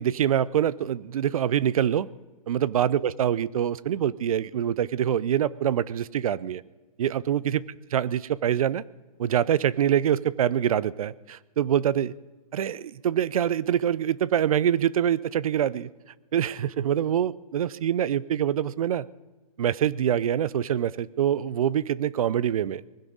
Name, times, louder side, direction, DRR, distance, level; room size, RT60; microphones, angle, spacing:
voice 1, 0.0-2.1 2.5-6.6 7.0-7.6 7.9-8.8 9.2-12.1 12.5-15.9 16.3-19.1 19.6-22.8, right 10 dB, 70° right, 21 dB, 0.6 m, -25 dB
20.5 x 16.0 x 3.9 m, 1.2 s
hypercardioid pair, 140°, 19 cm